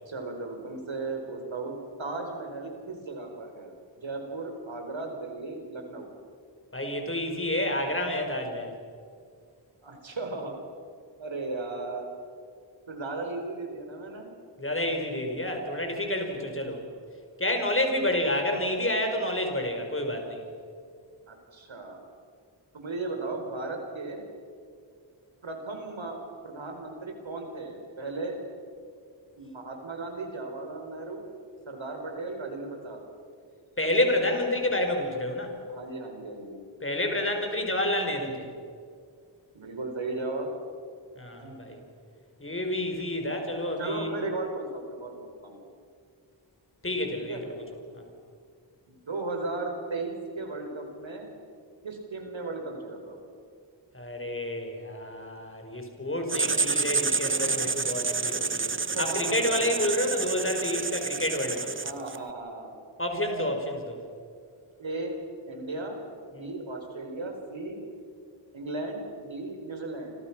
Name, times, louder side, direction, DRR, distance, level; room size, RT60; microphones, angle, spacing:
voice 1, 0.1-6.1 9.8-10.5 11.2-12.1 12.9-14.3 21.3-22.0 22.7-24.2 25.4-26.2 26.4-28.4 29.4-31.3 31.7-33.0 35.7-36.6 39.5-40.5 41.4-41.7 43.8-45.1 45.4-45.6 47.2-47.4 48.9-51.3 51.8-53.2 58.9-59.7 61.8-62.8 64.8-65.2 65.5-66.0 66.4-67.8 68.5-70.1, right 3 dB, 85° right, 4 dB, 4.7 m, -36 dB
voice 2, 6.7-8.7 14.6-16.8 17.4-20.4 33.8-35.5 36.8-38.5 41.2-41.8 42.4-44.2 46.8-47.6 47.9-48.0 53.9-61.7 63.0-64.0, left 1 dB, 30° left, 3 dB, 5.1 m, -29 dB
Writing, 56.3-62.3, right 4 dB, 25° right, 0.8 m, -29 dB
30.0 x 26.0 x 6.1 m, 2.2 s
wide cardioid pair, 90°, 45 cm